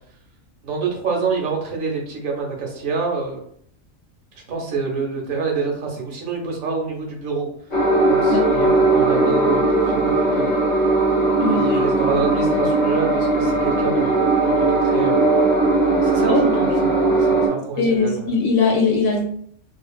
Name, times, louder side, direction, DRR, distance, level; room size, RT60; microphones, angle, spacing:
voice 1, 0.6-3.4 4.5-7.5 8.0-10.5 11.5-15.3 16.0-16.6 16.9-18.3, right 4 dB, 70° right, 0 dB, 1.2 m, -27 dB
sound 1, 7.7-17.5, right 2 dB, 45° left, 0.8 m, -18 dB
voice 2, 11.4-12.0 16.2-16.4 17.8-19.3, left 4 dB, 80° left, 0 dB, 1.0 m, -20 dB
2.8 x 2.5 x 2.3 m, 0.63 s
omnidirectional pair, 1.4 m